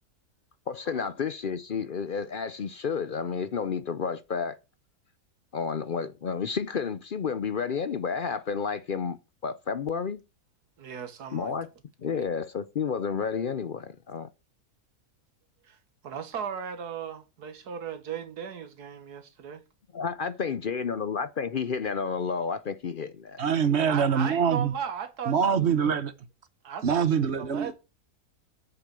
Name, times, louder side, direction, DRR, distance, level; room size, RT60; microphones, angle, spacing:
voice 1, 0.7-4.6 5.5-9.2 9.4-10.2 11.3-11.7 12.0-14.3 19.9-23.4, left 6 dB, 55° left, 0.6 m, -31 dB
voice 2, 10.8-11.5 12.1-12.3 15.6-15.8 16.0-19.6 23.9-25.9 26.6-27.7, right 7 dB, 90° right, 1.8 m, -37 dB
voice 3, 23.4-24.7 25.3-26.1 26.8-27.7, right 7 dB, 50° right, 1.1 m, -24 dB
8.0 x 7.1 x 6.8 m
omnidirectional pair, 1.6 m